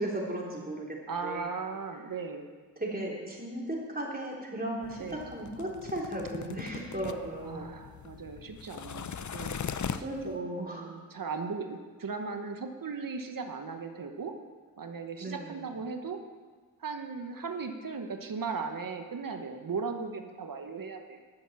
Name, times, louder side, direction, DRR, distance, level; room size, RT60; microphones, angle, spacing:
voice 1, 0.0-1.5 2.8-7.8 10.0-10.9 15.2-15.7, right 1 dB, 25° right, -3 dB, 3.5 m, -36 dB
voice 2, 1.1-2.5 5.0-5.3 7.4-14.3 14.8-16.2 16.8-21.2, right 5 dB, 65° right, 6 dB, 1.1 m, -37 dB
sound 1, 4.8-10.4, left 7 dB, 55° left, 0.6 m, -40 dB
11.0 x 7.4 x 7.3 m, 1.5 s
cardioid pair, 45°, 35 cm